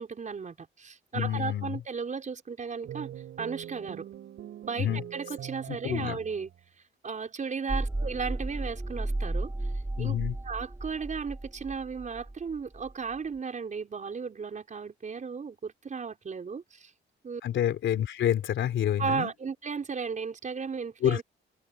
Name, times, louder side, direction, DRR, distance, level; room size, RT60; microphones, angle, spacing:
voice 1, 0.0-3.1 3.4-4.1 4.6-6.5 7.0-10.2 10.4-16.9 17.2-17.4 19.0-21.2, right 5 dB, 40° right, 5.8 m, -35 dB
voice 2, 1.1-1.8 4.8-5.0 5.7-6.2 10.0-10.3 17.4-19.3 21.0-21.2, left 10 dB, 70° left, 3.9 m, -28 dB
sound 1, 2.8-6.6, right 11 dB, 75° right, 4.6 m, -42 dB
sound 2, 7.7-13.1, right 2 dB, 15° right, 4.1 m, -34 dB
cardioid pair, 90°, 20 cm